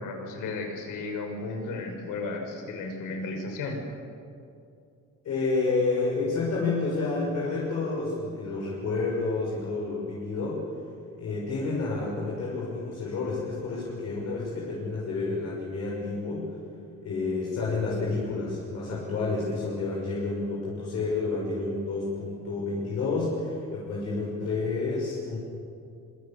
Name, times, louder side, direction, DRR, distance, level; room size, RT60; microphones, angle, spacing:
voice 1, 0.0-3.8, left 3 dB, 90° left, 3 dB, 6.0 m, -34 dB
voice 2, 5.2-10.6 11.1-16.5 17.0-25.4, left 3 dB, 55° left, -4 dB, 6.1 m, -29 dB
26.5 x 24.0 x 7.3 m, 2.5 s
cardioid pair, 175°, 31 cm